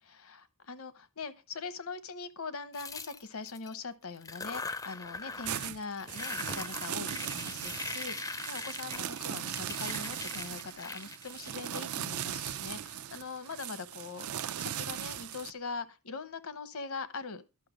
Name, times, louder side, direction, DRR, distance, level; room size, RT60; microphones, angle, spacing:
voice 1, 0.0-14.3 14.6-17.4, left 4 dB, 70° left, 0.9 m, -42 dB
sound 1, 2.7-3.7 4.2-5.7 6.0-12.4, left 4 dB, 15° left, 0.4 m, -41 dB
sound 2, 5.4-15.5, right 10 dB, 80° right, 0.5 m, -38 dB
11.5 x 5.7 x 4.9 m
head